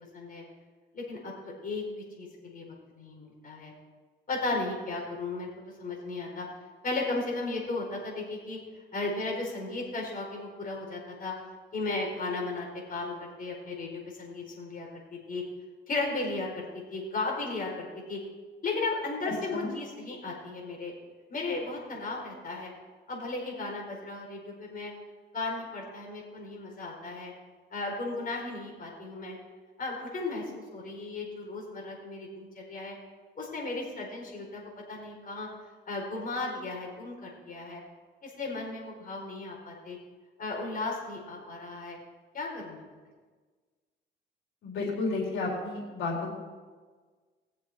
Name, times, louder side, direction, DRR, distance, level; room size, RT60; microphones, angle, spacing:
voice 1, 0.9-1.8 2.2-3.7 4.3-5.5 5.8-6.4 6.8-8.6 8.9-11.3 11.7-15.4 15.9-16.6 16.9-18.2 18.6-20.9 21.3-22.7 23.1-24.9 25.3-27.3 27.7-29.3 29.8-32.9 33.4-35.5 35.9-37.8 38.2-40.0 40.4-42.0 42.3-42.9, left 3 dB, 45° left, -1 dB, 4.7 m, -35 dB
voice 2, 19.2-19.7 44.6-46.4, left 3 dB, 80° left, -3 dB, 4.3 m, -32 dB
20.5 x 7.4 x 4.4 m, 1.4 s
cardioid pair, 90°, 20 cm